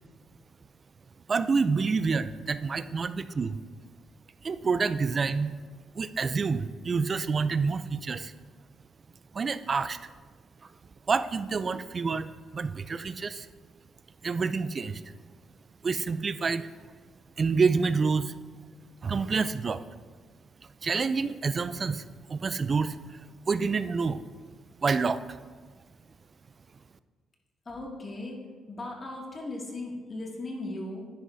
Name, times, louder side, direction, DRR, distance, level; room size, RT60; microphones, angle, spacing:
voice 1, 1.3-3.6 4.4-5.6 5.9-8.3 9.3-10.0 11.1-13.5 14.2-15.0 15.8-16.7 17.4-18.3 19.0-19.8 20.8-23.2 23.5-24.2 24.8-25.4, right 4 dB, 40° right, 13 dB, 0.4 m, -28 dB
voice 2, 27.7-28.4 28.7-31.1, left 2 dB, 35° left, -1 dB, 2.2 m, -37 dB
10.5 x 9.9 x 2.7 m, 1.5 s
cardioid pair, 90°, 0 cm